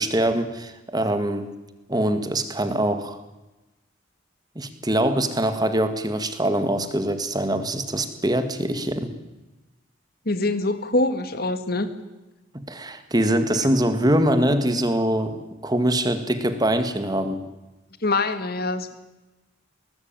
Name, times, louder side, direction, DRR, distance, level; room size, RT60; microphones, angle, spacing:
voice 1, 0.0-1.5 1.9-3.2 4.6-9.1 12.7-17.4, right 1 dB, 20° right, 9 dB, 1.9 m, -23 dB
voice 2, 10.3-11.9 18.0-18.9, left 2 dB, 50° left, 10 dB, 2.0 m, -24 dB
21.5 x 19.0 x 9.0 m, 1.1 s
head